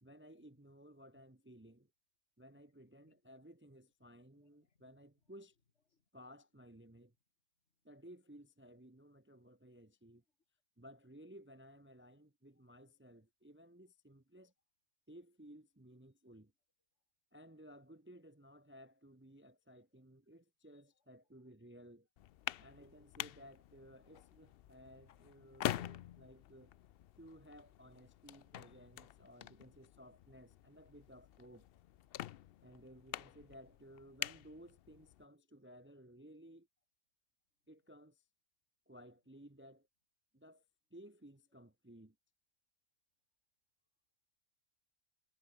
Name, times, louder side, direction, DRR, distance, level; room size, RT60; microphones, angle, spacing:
voice 1, 0.0-1.9 2.4-5.6 6.1-7.1 7.8-10.2 10.8-14.5 15.1-16.5 17.3-22.1 22.6-26.7 27.2-31.7 32.6-36.7 37.7-38.2 38.9-39.9 40.3-40.6 40.9-42.2, equal, 10° right, 0.9 m, -58 dB
voice 2, 2.5-3.2 4.3-5.4 5.7-6.4 20.9-21.1, left 4 dB, 50° left, 2.1 m, -83 dB
sound 1, 22.2-35.2, left 12 dB, 75° left, 0.5 m, -46 dB
omnidirectional pair, 1.6 m